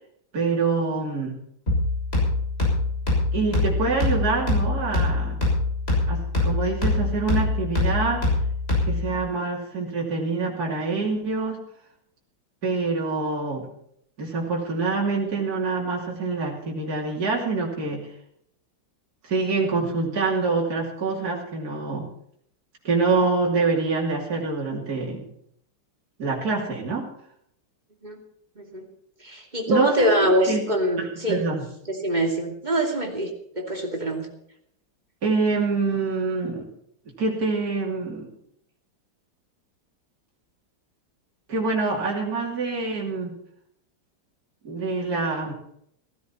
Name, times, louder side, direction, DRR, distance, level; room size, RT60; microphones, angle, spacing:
voice 1, 0.3-1.3 3.3-5.4 6.1-8.2 8.8-11.6 12.6-13.7 14.2-18.1 19.2-22.1 22.8-25.3 26.2-27.1 29.7-30.6 31.0-31.7 35.2-36.7 37.2-38.3 41.5-43.3 44.6-45.5, right 4 dB, 45° right, -3 dB, 3.3 m, -26 dB
sound 1, 1.7-9.2, left 2 dB, 30° left, 6.8 m, -24 dB
voice 2, 28.6-28.9 29.2-31.4 31.9-34.3, equal, 20° right, 1 dB, 2.6 m, -24 dB
16.0 x 15.5 x 4.4 m, 0.70 s
omnidirectional pair, 2.3 m